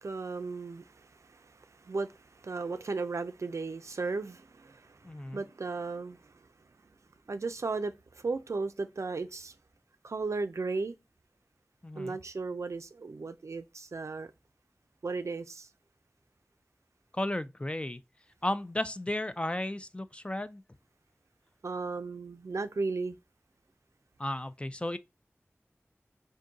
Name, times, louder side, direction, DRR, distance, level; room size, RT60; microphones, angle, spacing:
voice 1, 0.0-1.1 1.8-2.1 2.4-5.0 5.3-6.2 7.3-9.5 10.0-10.9 12.0-14.3 15.0-15.7 21.6-23.2, right 3 dB, 85° right, 0.4 m, -35 dB
voice 2, 5.0-5.4 11.8-12.2 17.1-18.0 18.4-20.6 24.2-25.0, left 1 dB, 20° left, 0.3 m, -34 dB
3.7 x 2.7 x 3.8 m
wide cardioid pair, 50°, 5 cm